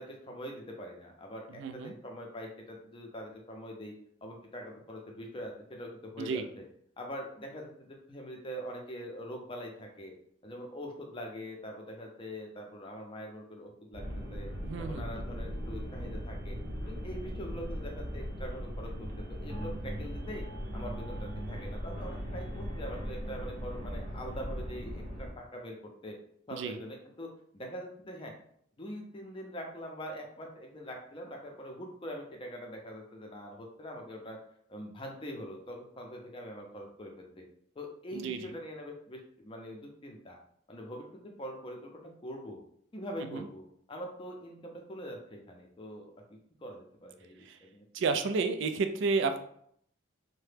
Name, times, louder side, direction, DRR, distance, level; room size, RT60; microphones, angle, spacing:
voice 1, 0.0-3.9 4.2-6.6 7.0-10.1 10.4-14.0 14.3-14.5 14.8-16.6 16.9-18.9 19.3-20.4 20.7-26.2 26.5-28.3 28.8-34.4 34.7-37.4 37.8-40.4 40.7-42.6 42.9-46.1 46.3-47.9, equal, 25° left, 1 dB, 0.5 m, -43 dB
voice 2, 1.5-1.9 6.2-6.4 14.6-15.2 26.5-26.8 38.1-38.5 43.3-43.5 47.4-47.6 47.9-49.4, right 4 dB, 60° right, 8 dB, 0.3 m, -31 dB
sound 1, 13.9-25.3, equal, 45° right, 0.8 m, -38 dB
2.8 x 2.1 x 3.2 m, 0.67 s
head